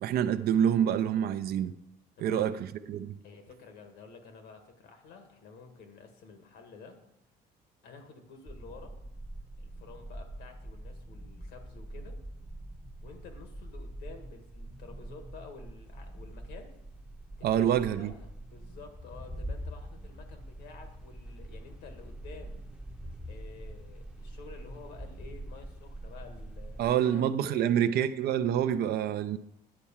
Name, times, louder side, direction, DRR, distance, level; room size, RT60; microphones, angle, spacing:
voice 1, 0.0-1.7 2.2-2.5 2.9-3.2 17.4-18.1 26.8-29.4, right 9 dB, 65° right, 0.5 m, -27 dB
voice 2, 2.2-2.6 3.2-7.0 7.8-9.0 9.6-12.2 13.0-16.8 17.4-22.6 23.3-28.0, left 4 dB, 85° left, 1.7 m, -50 dB
sound 1, 8.5-27.0, right 1 dB, 5° right, 0.7 m, -44 dB
9.9 x 4.5 x 7.2 m
cardioid pair, 110°, 17 cm